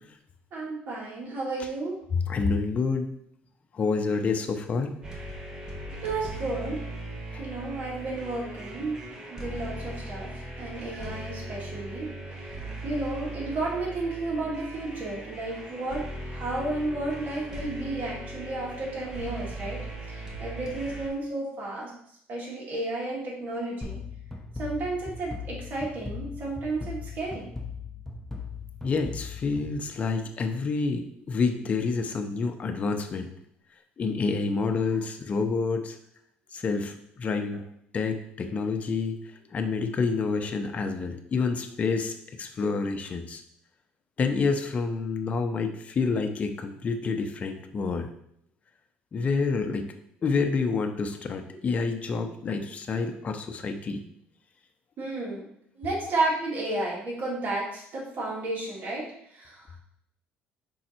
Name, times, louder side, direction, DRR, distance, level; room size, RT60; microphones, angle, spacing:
voice 1, 0.5-2.0 6.0-6.9 7.4-9.0 9.3-19.8 20.1-21.9 22.3-24.0 24.6-27.5 34.9-35.0 55.0-55.5 55.8-59.8, right 2 dB, 50° right, -4 dB, 2.4 m, -32 dB
voice 2, 2.1-3.1 3.7-4.9 7.3-7.4 28.8-33.3 34.0-36.0 36.5-36.9 37.2-37.6 37.9-39.2 39.5-43.4 44.2-48.1 49.1-49.8 50.2-54.0, left 4 dB, 35° left, 5 dB, 0.7 m, -28 dB
sound 1, 5.0-21.1, right 1 dB, 20° right, 1.4 m, -39 dB
sound 2, 23.8-30.4, left 4 dB, 10° left, 0.9 m, -39 dB
5.5 x 3.9 x 4.4 m, 0.72 s
cardioid pair, 115°, 4 cm